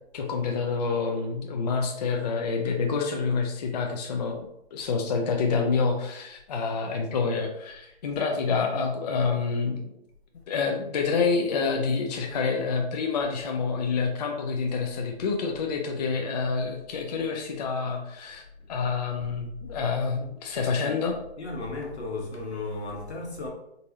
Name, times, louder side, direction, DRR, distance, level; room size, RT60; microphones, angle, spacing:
voice 1, 0.1-9.9 10.5-18.4 18.7-21.1, left 5 dB, 40° left, 2 dB, 0.4 m, -27 dB
voice 2, 21.4-23.5, left 2 dB, 80° left, 1 dB, 1.2 m, -35 dB
3.8 x 2.5 x 2.8 m, 0.81 s
hypercardioid pair, 145°, 33 cm